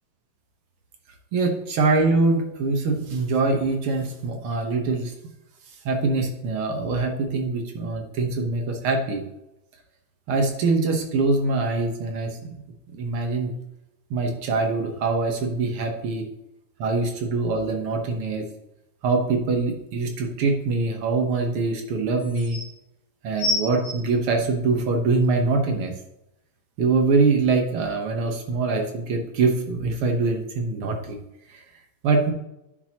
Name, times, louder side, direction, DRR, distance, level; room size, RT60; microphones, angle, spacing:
voice 1, 1.3-5.1 5.8-9.2 10.3-12.6 12.9-13.5 14.1-16.3 16.8-18.4 19.0-22.6 23.2-25.9 26.8-31.2 31.5-31.6 32.0-32.3, right 3 dB, 60° right, 3 dB, 1.7 m, -23 dB
sound 1, 20.1-20.2 21.7-21.8 22.2-22.7 23.4-25.0 25.7-25.8, left 1 dB, 40° left, 2.1 m, -28 dB
10.5 x 6.7 x 2.9 m, 0.86 s
omnidirectional pair, 3.6 m